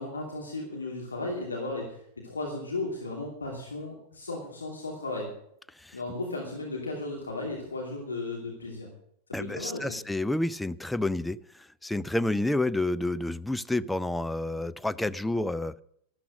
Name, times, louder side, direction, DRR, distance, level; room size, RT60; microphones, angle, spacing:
voice 1, 0.0-5.3 5.9-8.9 9.4-10.0, left 2 dB, 75° left, 0 dB, 2.7 m, -35 dB
voice 2, 9.3-11.4 11.8-15.8, left 2 dB, 5° left, 14 dB, 0.4 m, -29 dB
13.0 x 12.0 x 6.3 m, 0.71 s
figure-of-eight pair, 90°, 0 cm